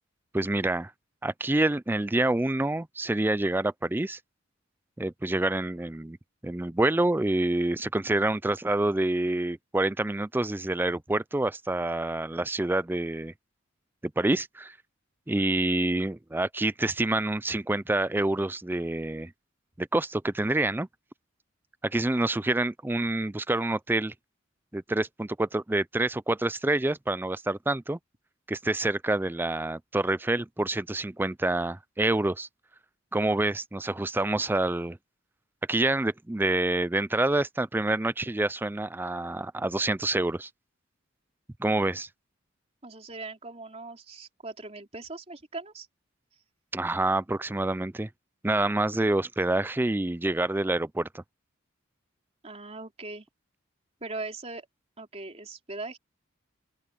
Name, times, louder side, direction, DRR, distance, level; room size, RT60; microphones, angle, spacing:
voice 1, 0.3-0.9 1.2-4.2 5.0-6.2 6.4-13.3 14.2-14.8 15.3-19.3 19.8-20.9 21.8-24.1 24.7-28.0 28.5-32.5 33.1-35.0 35.7-40.5 41.6-42.1 46.7-48.1 48.4-51.2, right 2 dB, 10° right, 0.4 m, -27 dB
voice 2, 42.8-45.9 52.4-53.3 54.0-54.7 55.0-56.0, right 3 dB, 30° right, 3.8 m, -40 dB
open air
head